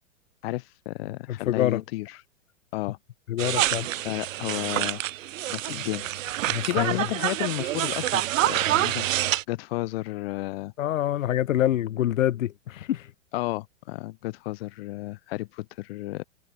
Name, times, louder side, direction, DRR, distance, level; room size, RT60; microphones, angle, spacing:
voice 1, 0.4-2.1 2.7-3.0 4.0-5.0 5.5-6.1 6.6-10.7 13.3-16.2, left 19 dB, 50° left, 1.0 m, -32 dB
voice 2, 1.3-1.8 3.3-4.1 5.7-5.8 6.5-7.0 10.8-13.1, left 12 dB, 75° left, 1.0 m, -26 dB
sound 1, 3.4-9.4, right 14 dB, 75° right, 0.7 m, -27 dB
hypercardioid pair, 135°, 39 cm